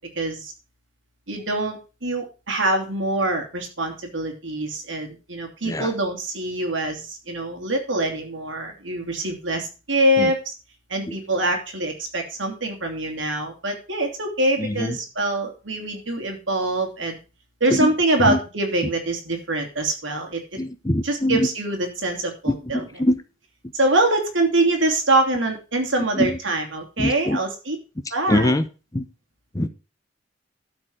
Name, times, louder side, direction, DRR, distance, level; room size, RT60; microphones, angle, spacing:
voice 1, 0.2-0.5 1.3-10.4 10.9-17.2 17.6-20.4 21.0-22.8 23.7-27.8 28.1-28.5, right 2 dB, 75° right, 3.0 m, -24 dB
voice 2, 5.6-6.0 10.2-10.3 11.1-11.2 14.6-15.0 17.7-17.9 18.2-18.4 18.8-18.9 20.6-21.5 22.5-23.2 26.1-26.4 27.0-27.4 28.0-28.7 28.9-29.0 29.5-29.7, left 1 dB, 20° left, 0.7 m, -23 dB
12.5 x 4.9 x 6.3 m
head